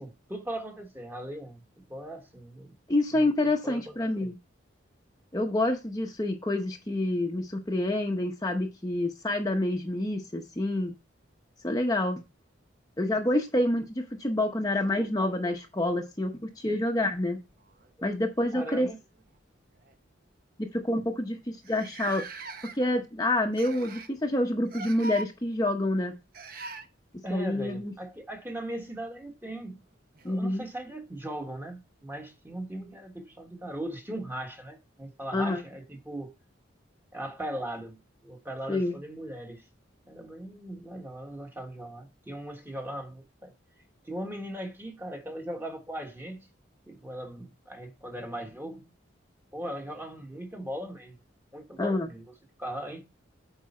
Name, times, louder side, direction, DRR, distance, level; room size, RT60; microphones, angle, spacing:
voice 1, 0.0-2.7 3.1-3.3 3.6-4.3 15.0-15.1 18.0-18.1 18.5-19.0 27.2-29.8 30.2-36.3 37.1-39.7 40.1-43.5 44.0-46.5 46.9-48.9 49.5-51.2 51.5-52.2 52.6-53.0, right 1 dB, 10° right, 1.3 m, -39 dB
voice 2, 2.9-4.3 5.3-10.9 11.6-12.2 13.0-17.4 18.0-18.9 20.6-22.5 22.8-26.1 27.3-27.9 30.2-30.6 35.3-35.6 38.7-39.0 51.8-52.1, left 1 dB, 20° left, 0.8 m, -28 dB
sound 1, 17.0-18.2 19.2-19.4 19.8-19.9 20.7-20.8 20.9-21.0 21.6-23.0 23.5-24.2 24.7-25.3 26.3-26.9 29.0-29.1 30.1-30.2, right 3 dB, 50° right, 0.8 m, -41 dB
8.6 x 4.7 x 4.2 m
head